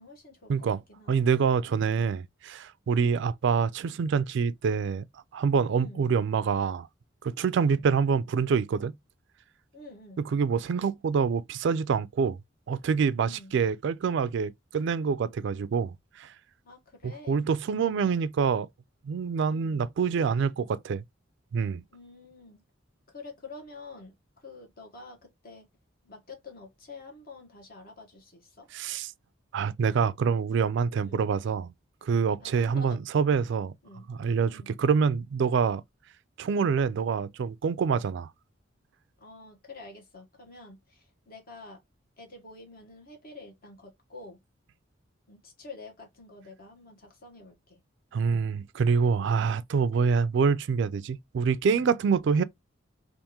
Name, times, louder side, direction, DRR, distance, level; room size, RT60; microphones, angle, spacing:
voice 1, 0.0-1.3 5.7-6.0 7.6-7.8 9.7-10.2 13.2-13.6 16.6-17.4 19.4-19.8 21.9-22.6 23.1-25.7 26.0-28.7 31.0-31.2 32.4-33.0 33.8-34.1 34.5-34.7 39.2-41.8 42.2-44.4 45.3-47.8 49.2-49.5, left 3 dB, 50° left, 1.3 m, -48 dB
voice 2, 1.1-5.0 5.3-6.9 7.2-8.9 10.2-12.4 12.7-16.3 17.0-18.7 19.0-21.0 21.5-21.8 28.7-29.1 29.5-31.7 32.0-33.7 34.1-35.8 36.4-38.3 48.1-52.4, right 6 dB, 65° right, 0.3 m, -26 dB
3.5 x 2.5 x 2.8 m
head